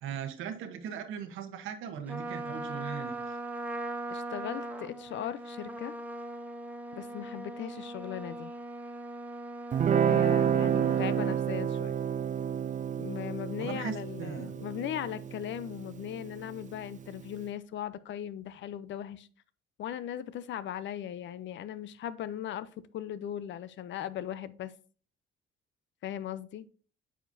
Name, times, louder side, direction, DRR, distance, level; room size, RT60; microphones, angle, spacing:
voice 1, 0.0-3.4 13.6-14.6, right 7 dB, 90° right, 8 dB, 1.0 m, -39 dB
Trumpet, 2.1-11.4, right 1 dB, 10° right, 0.8 m, -40 dB
voice 2, 4.1-6.0 6.9-8.5 9.9-12.0 13.0-19.3 19.8-24.7 26.0-26.7, left 10 dB, 70° left, 16 dB, 0.5 m, -38 dB
Guitar, 9.7-16.9, right 8 dB, 40° right, 0.5 m, -29 dB
8.8 x 5.0 x 2.6 m, 0.41 s
cardioid pair, 90°, 20 cm